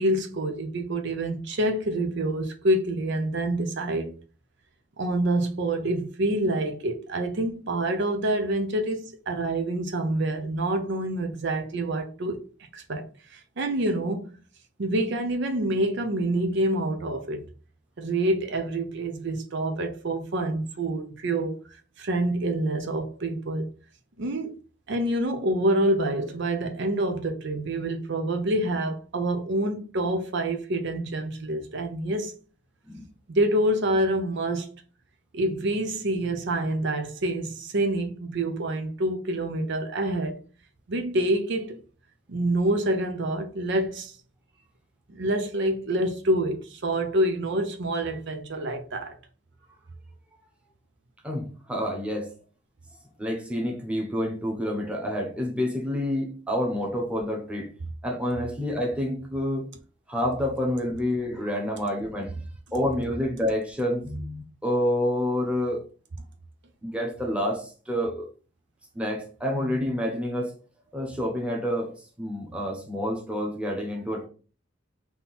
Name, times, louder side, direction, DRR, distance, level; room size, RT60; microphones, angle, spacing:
voice 1, 0.0-4.1 5.0-12.4 12.7-14.2 14.8-17.4 18.0-21.6 22.0-23.7 24.2-24.6 24.9-32.3 33.3-34.7 35.3-40.4 40.9-41.8 42.3-44.2 45.1-49.2, right 1 dB, 65° right, 0.6 m, -27 dB
voice 2, 51.2-52.3 53.2-57.7 58.0-59.7 60.1-62.4 62.7-65.8 66.8-68.3 68.9-70.5 70.9-74.3, left 1 dB, 5° right, 1.0 m, -28 dB
3.7 x 2.8 x 4.2 m
head